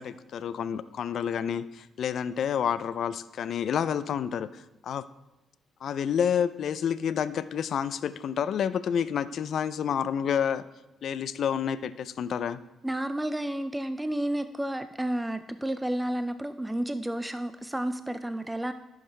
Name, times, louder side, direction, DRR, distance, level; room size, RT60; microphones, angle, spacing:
voice 1, 0.0-5.1 5.8-10.6 11.0-12.6, left 8 dB, 65° left, 15 dB, 0.4 m, -29 dB
voice 2, 12.8-18.7, right 1 dB, 10° right, 10 dB, 0.4 m, -31 dB
14.0 x 6.5 x 3.3 m, 1.0 s
cardioid pair, 90°, 0 cm